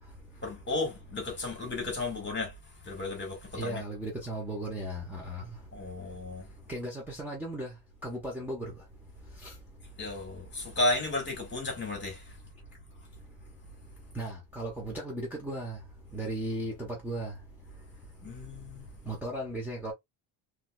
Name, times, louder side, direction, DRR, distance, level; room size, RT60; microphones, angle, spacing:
voice 1, 0.4-2.5 2.8-3.8 5.7-6.5 10.0-12.4 18.2-18.9, left 2 dB, 20° left, 2.5 m, -33 dB
voice 2, 3.5-5.4 6.7-7.7 8.0-8.7 9.4-9.5 14.1-15.8 16.1-17.3 19.1-19.9, right 1 dB, 5° right, 1.5 m, -36 dB
4.0 x 3.2 x 2.5 m
cardioid pair, 130°, 49 cm